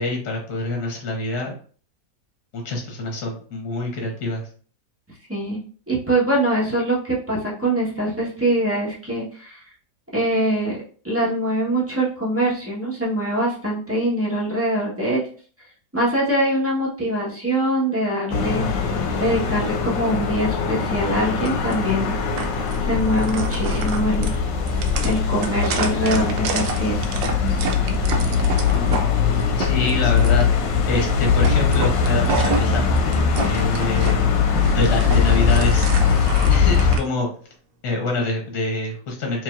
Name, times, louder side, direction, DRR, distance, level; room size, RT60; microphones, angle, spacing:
voice 1, 0.0-1.5 2.5-4.4 29.6-30.5 30.9-32.8 33.4-34.3 34.7-35.9 36.5-37.3 37.8-39.4, left 2 dB, 60° left, 0 dB, 1.6 m, -25 dB
voice 2, 5.3-5.6 5.9-9.6 10.1-10.8 11.0-15.2 15.9-18.6 19.2-22.1 22.8-24.4 25.0-27.3, right 1 dB, 10° right, -6 dB, 0.9 m, -23 dB
sound 1, 18.3-37.0, left 6 dB, 80° left, 1.4 m, -21 dB
sound 2, 21.4-21.7 22.4-22.8 23.1-29.1 29.4-30.4 30.9-31.1 31.4-34.1 34.5-37.0, right 4 dB, 85° right, 1.3 m, -29 dB
4.8 x 3.0 x 2.5 m, 0.43 s
omnidirectional pair, 2.0 m